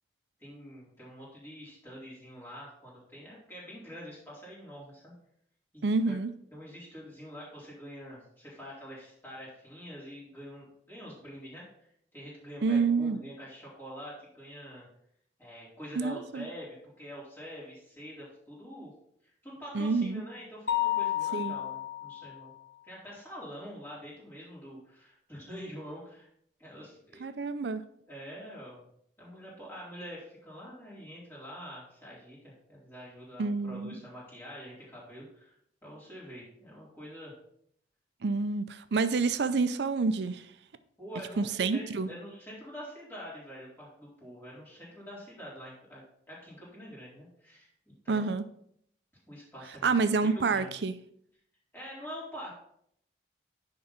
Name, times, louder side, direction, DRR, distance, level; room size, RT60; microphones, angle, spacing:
voice 1, 0.4-5.1 5.7-6.2 6.5-14.9 15.4-18.9 19.2-22.5 22.8-26.3 26.6-27.3 28.1-28.9 29.2-35.5 35.8-37.3 41.0-48.3 49.3-50.8 51.7-52.5, equal, 15° left, -7 dB, 3.9 m, -46 dB
voice 2, 5.8-6.3 12.6-13.2 16.0-16.5 19.7-20.2 21.3-21.6 27.2-27.8 33.4-34.0 38.2-40.5 41.4-42.1 48.1-48.4 49.8-50.9, right 4 dB, 70° right, 11 dB, 0.5 m, -28 dB
Mallet percussion, 20.7-22.5, left 13 dB, 65° left, 0.7 m, -31 dB
10.0 x 3.8 x 5.6 m, 0.69 s
head